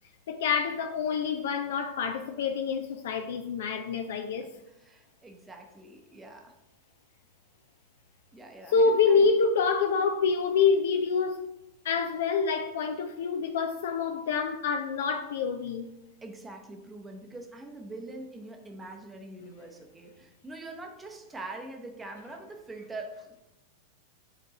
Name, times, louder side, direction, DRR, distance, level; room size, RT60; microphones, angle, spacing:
voice 1, 0.3-4.5 8.7-11.4 11.8-15.9, left 5 dB, 60° left, 0.5 m, -26 dB
voice 2, 4.4-6.6 8.3-9.3 16.2-23.4, right 2 dB, 15° right, 0.8 m, -44 dB
7.8 x 3.6 x 4.0 m
figure-of-eight pair, 90°, 0 cm